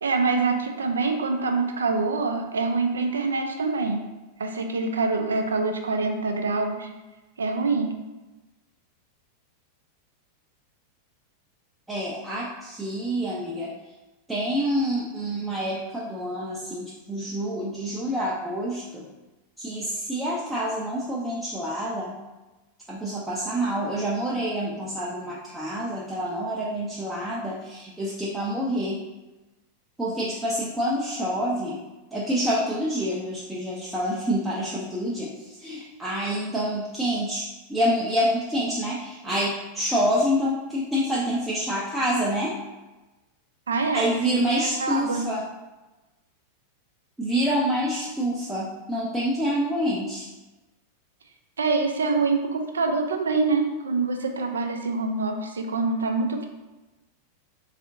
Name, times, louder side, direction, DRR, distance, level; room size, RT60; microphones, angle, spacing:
voice 1, 0.0-4.0 4.4-6.9 7.4-8.0 43.7-45.3 51.6-56.5, right 3 dB, 70° right, 4 dB, 0.4 m, -25 dB
voice 2, 11.9-13.7 14.3-19.1 19.6-22.2 22.9-29.0 30.0-31.8 32.1-42.6 43.9-45.5 47.2-50.3, equal, 5° right, -6 dB, 0.5 m, -27 dB
3.5 x 2.4 x 2.6 m, 1.1 s
figure-of-eight pair, 90°, 0 cm